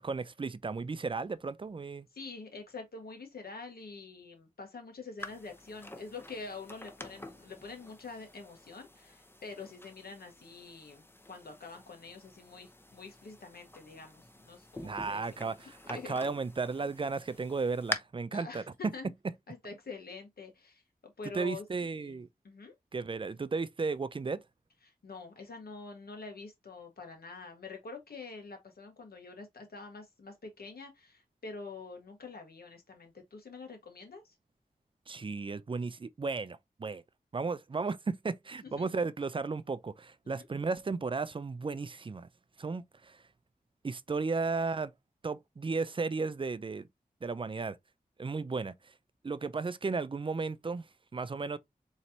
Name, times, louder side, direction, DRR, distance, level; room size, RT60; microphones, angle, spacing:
voice 1, 0.0-2.1 14.8-18.9 21.3-22.3 22.9-24.4 35.1-37.0 37.3-42.3 42.6-43.2 43.8-44.9 45.2-46.9 47.2-47.8 48.2-48.9 49.2-50.8 51.1-51.6, right 4 dB, 35° right, 0.4 m, -34 dB
voice 2, 2.1-15.5 15.8-16.2 18.3-19.1 19.5-20.8 21.2-21.6 21.9-22.2 22.4-22.7 24.8-34.3 38.6-38.9 40.3-40.5, left 4 dB, 85° left, 1.3 m, -46 dB
sound 1, 5.2-18.0, left 1 dB, 15° left, 0.7 m, -46 dB
4.2 x 3.2 x 2.7 m
wide cardioid pair, 60°, 15 cm